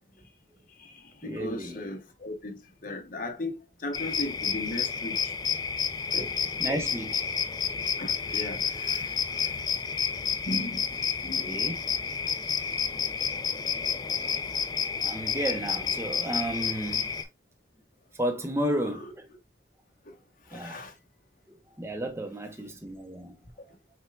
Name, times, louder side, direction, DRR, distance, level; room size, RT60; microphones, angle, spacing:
voice 1, 0.7-5.6 6.1-6.5 8.0-9.6 10.4-11.6 12.3-12.4 18.8-19.1 20.0-20.2 20.4-21.0, left 1 dB, 45° left, 0.9 m, -38 dB
voice 2, 1.2-1.8 6.6-7.2 11.4-11.8 15.0-17.1 18.2-19.2 20.5-20.8 21.5-23.4, right 1 dB, 15° right, 0.6 m, -32 dB
sound 1, 3.9-17.2, left 6 dB, 20° left, 0.3 m, -30 dB
5.6 x 3.3 x 2.2 m
head